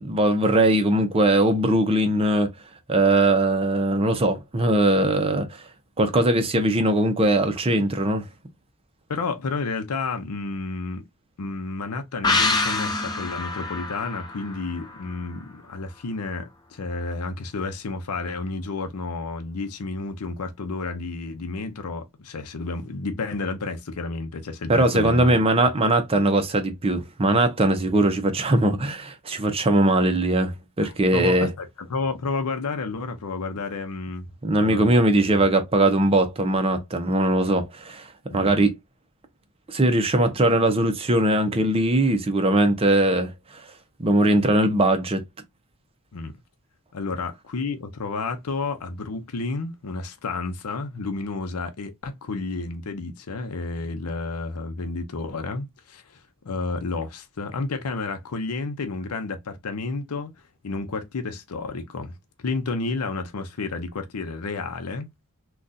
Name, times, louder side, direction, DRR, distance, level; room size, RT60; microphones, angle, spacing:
voice 1, 0.0-2.5 2.9-5.6 6.0-8.2 24.7-31.5 34.4-38.1 38.3-38.8 39.7-43.6 44.0-45.2, right 1 dB, 25° right, 0.6 m, -20 dB
voice 2, 9.1-11.1 11.4-25.4 30.8-34.3 34.6-34.9 35.3-35.5 38.3-38.6 46.1-46.3 46.9-60.3 60.6-65.3, left 3 dB, 80° left, 0.6 m, -31 dB
sound 1, 12.2-15.7 16.0-16.1, left 3 dB, 20° left, 0.6 m, -27 dB
3.8 x 2.3 x 2.6 m
head